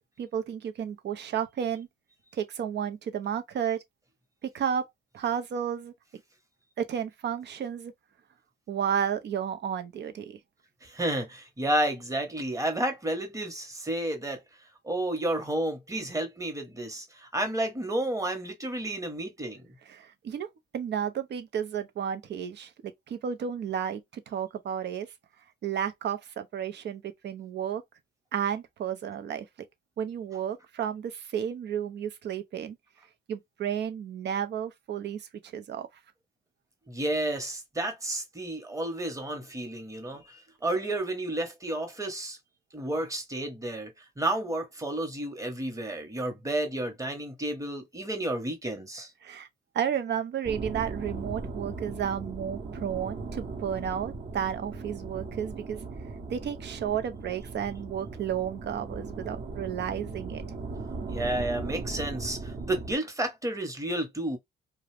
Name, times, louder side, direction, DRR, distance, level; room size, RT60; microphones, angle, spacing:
voice 1, 0.2-1.9 2.3-3.8 4.4-4.9 5.1-5.9 6.8-7.9 8.7-10.4 19.9-20.5 20.7-25.1 25.6-27.8 28.3-29.5 30.0-32.8 33.3-35.9 49.2-49.5 49.7-55.8 56.3-60.4, right 8 dB, 60° right, 0.7 m, -32 dB
voice 2, 10.8-14.4 14.8-19.7 36.9-42.4 42.7-49.1 61.1-64.4, right 1 dB, 15° right, 1.1 m, -31 dB
sound 1, 50.4-63.0, right 3 dB, 40° right, 1.0 m, -38 dB
2.5 x 2.3 x 3.2 m
cardioid pair, 90°, 20 cm